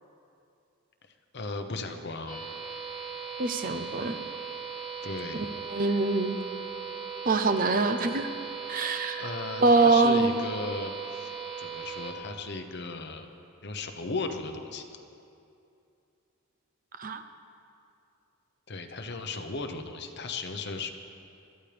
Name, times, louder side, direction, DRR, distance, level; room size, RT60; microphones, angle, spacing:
voice 1, 1.3-2.4 5.0-5.4 9.2-13.3 13.6-14.9 18.7-20.9, left 3 dB, 50° left, 6 dB, 0.9 m, -36 dB
sound 1, 2.3-12.1, right 6 dB, 20° right, 2.1 m, -38 dB
voice 2, 3.4-4.1 5.7-6.4 7.3-8.3 8.7-9.2 9.6-10.4 17.0-17.2, right 3 dB, 40° right, 8 dB, 0.6 m, -24 dB
21.5 x 14.0 x 3.4 m, 2.6 s
head